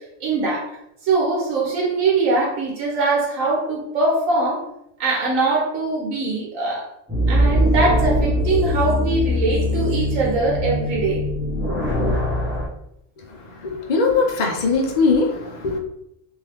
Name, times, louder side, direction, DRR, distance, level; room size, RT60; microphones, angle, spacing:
voice 1, 0.2-0.6 1.0-4.6 5.0-6.9 7.3-11.2, right 3 dB, 90° right, -2 dB, 1.2 m, -22 dB
sound 1, 7.1-12.7, left 1 dB, 15° right, 0.6 m, -21 dB
voice 2, 13.6-15.8, left 4 dB, 50° left, 2 dB, 0.5 m, -20 dB
3.1 x 2.7 x 3.3 m, 0.79 s
omnidirectional pair, 1.3 m